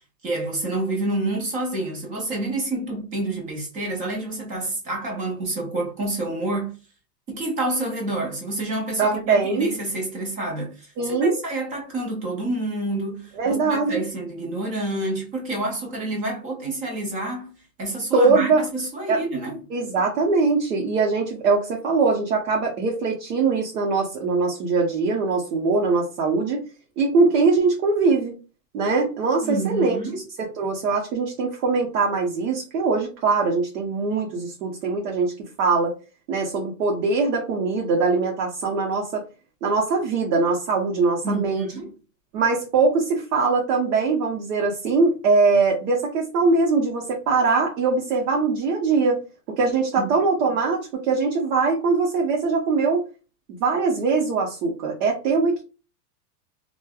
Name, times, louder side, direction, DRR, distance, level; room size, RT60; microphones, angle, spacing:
voice 1, 0.2-6.8 7.3-10.9 11.2-19.6 29.4-30.2 41.2-41.9 50.0-50.1, right 2 dB, 20° right, 0.4 m, -28 dB
voice 2, 9.0-9.7 11.0-11.4 13.4-14.0 18.1-18.7 19.1-19.2 19.7-26.6 27.0-28.3 28.7-30.0 30.4-35.9 36.3-39.2 39.6-41.7 42.3-49.2 49.6-53.1 53.5-55.6, right 4 dB, 65° right, 1.0 m, -22 dB
3.1 x 2.3 x 2.3 m
hypercardioid pair, 120°, 49 cm